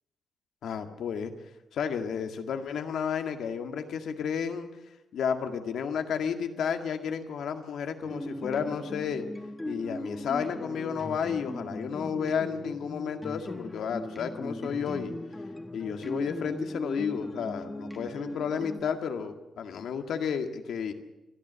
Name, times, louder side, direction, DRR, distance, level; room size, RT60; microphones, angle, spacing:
voice 1, 0.6-1.3 1.7-4.7 5.1-9.3 9.7-15.1 15.7-20.9, left 7 dB, 80° left, 6 dB, 1.9 m, -32 dB
sound 1, 8.0-18.8, left 1 dB, 10° left, 1.5 m, -38 dB
28.5 x 11.5 x 8.1 m, 0.99 s
cardioid pair, 90°, 0 cm